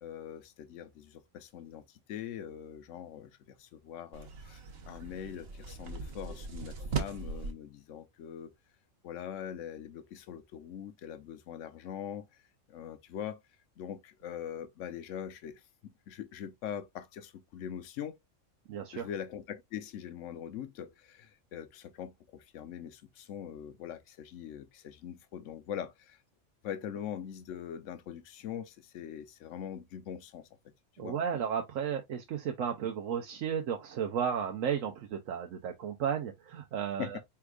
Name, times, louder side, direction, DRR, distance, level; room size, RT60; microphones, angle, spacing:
voice 1, 0.0-1.8 2.1-4.6 4.9-8.5 9.0-12.3 12.7-13.4 13.8-18.2 18.9-26.2 26.6-30.4 31.0-31.2 37.0-37.1, left 9 dB, 75° left, 1.0 m, -42 dB
sound 1, 4.1-7.5, right 4 dB, 55° right, 1.0 m, -39 dB
voice 2, 18.7-19.1 31.0-37.2, right 8 dB, 80° right, 1.1 m, -33 dB
4.8 x 3.4 x 2.3 m
omnidirectional pair, 1.3 m